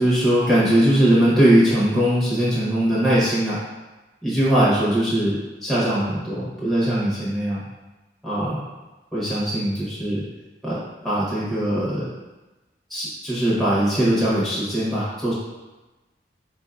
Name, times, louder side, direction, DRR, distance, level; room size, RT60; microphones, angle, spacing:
voice 1, 0.0-3.6 4.2-7.6 8.2-8.7 9.1-10.2 10.6-10.8 11.0-12.1 12.9-15.3, right 1 dB, ahead, -9 dB, 0.7 m, -20 dB
4.3 x 2.2 x 2.4 m, 1.1 s
head